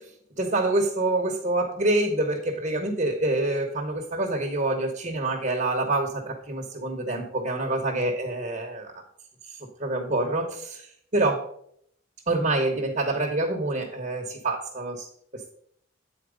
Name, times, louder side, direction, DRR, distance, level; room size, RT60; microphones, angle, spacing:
voice 1, 0.4-8.9 9.8-10.9 11.1-11.4 12.3-15.1, right 2 dB, 40° right, 2 dB, 1.0 m, -26 dB
8.8 x 4.3 x 5.0 m, 0.66 s
head